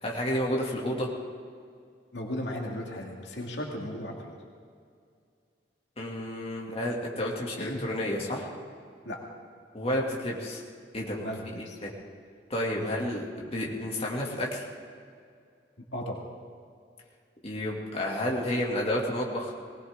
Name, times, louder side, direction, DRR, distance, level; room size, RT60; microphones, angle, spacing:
voice 1, 0.0-1.1 6.0-8.5 9.7-10.6 10.9-11.3 11.6-11.9 12.5-14.6 17.4-19.5, left 1 dB, 35° left, -2 dB, 2.4 m, -31 dB
voice 2, 2.1-4.4 7.6-7.8 9.1-9.2 11.2-11.8 12.8-12.9 15.9-16.2, left 1 dB, 75° left, 0 dB, 2.2 m, -36 dB
20.0 x 19.0 x 3.7 m, 2.2 s
head